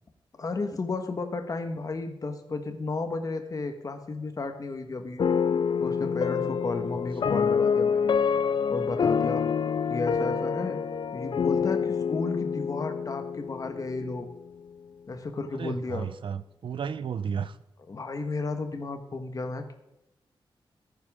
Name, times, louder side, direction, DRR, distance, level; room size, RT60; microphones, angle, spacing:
voice 1, 0.4-5.2 5.8-8.1 8.7-9.4 9.9-10.8 11.1-14.3 15.1-16.1 17.9-19.7, left 3 dB, 40° left, 7 dB, 1.4 m, -33 dB
sound 1, 5.2-14.4, left 6 dB, 60° left, 0.5 m, -27 dB
voice 2, 15.5-17.6, right 7 dB, 70° right, 14 dB, 0.7 m, -33 dB
14.0 x 10.0 x 3.7 m, 0.88 s
wide cardioid pair, 160°, 9 cm